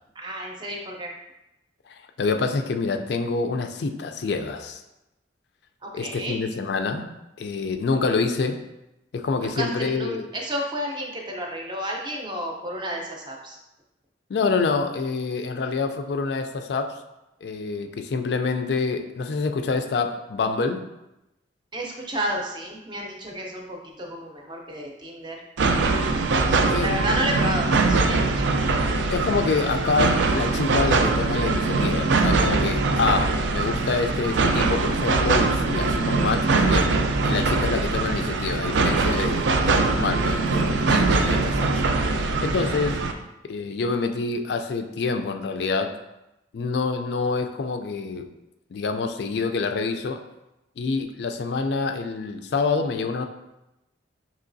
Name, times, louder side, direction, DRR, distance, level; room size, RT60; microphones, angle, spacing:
voice 1, 0.2-1.1 5.8-6.4 9.4-13.6 21.7-25.4 26.8-28.5, right 1 dB, 25° right, 1 dB, 0.5 m, -31 dB
voice 2, 1.9-4.8 5.9-7.1 7.4-8.6 9.1-10.3 14.3-17.0 17.4-20.8 26.7-26.9 29.1-36.9 37.2-41.7 42.1-43.0 43.4-46.0 46.5-48.3 48.7-50.2 50.8-53.3, left 4 dB, 60° left, 6 dB, 0.3 m, -26 dB
sound 1, 25.6-43.1, right 3 dB, 70° right, 0.4 m, -22 dB
5.5 x 3.0 x 2.6 m, 0.93 s
head